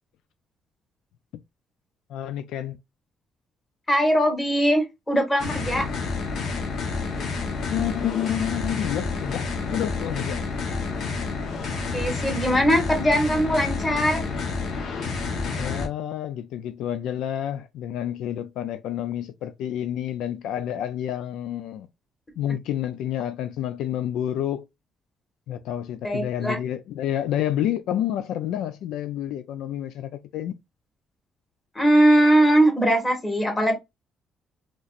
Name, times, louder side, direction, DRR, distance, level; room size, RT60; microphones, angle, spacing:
voice 1, 2.1-2.8 7.7-10.4 15.5-21.9 22.4-24.7 25.5-30.5, left 11 dB, 85° left, 0.4 m, -29 dB
voice 2, 3.9-5.9 10.7-10.8 11.9-14.2 26.0-26.6 31.8-33.7, right 1 dB, 15° left, 1.7 m, -20 dB
sound 1, 5.4-15.9, left 4 dB, 65° left, 1.1 m, -29 dB
4.1 x 3.0 x 2.5 m
cardioid pair, 120°, 0 cm